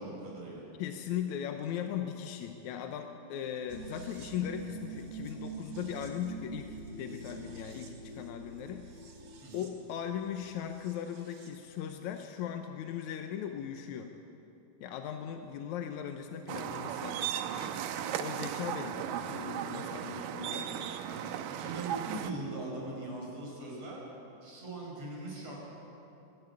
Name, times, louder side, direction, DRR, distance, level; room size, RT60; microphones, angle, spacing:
voice 1, 0.0-0.6 9.4-9.6 21.0-24.1 24.4-25.6, right 2 dB, 45° right, -3 dB, 6.4 m, -41 dB
voice 2, 0.8-8.9 9.5-14.1 14.8-17.8 18.2-20.9, left 9 dB, 70° left, 5 dB, 1.9 m, -38 dB
sound 1, 3.7-11.6 11.9-12.0, right 3 dB, 60° right, 3.4 m, -45 dB
sound 2, 16.5-22.3, right 9 dB, 80° right, 2.4 m, -36 dB
24.5 x 12.0 x 9.7 m, 3.0 s
omnidirectional pair, 4.0 m